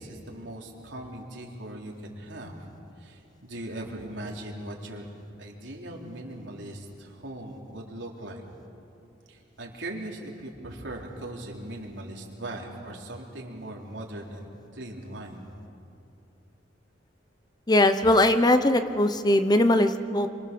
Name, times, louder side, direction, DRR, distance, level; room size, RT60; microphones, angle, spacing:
voice 1, 0.0-2.7 3.0-5.1 5.4-8.4 9.3-15.5, right 1 dB, 70° right, -1 dB, 3.7 m, -39 dB
voice 2, 17.7-20.3, left 1 dB, 20° left, 9 dB, 0.9 m, -20 dB
27.0 x 25.5 x 7.0 m, 2.7 s
head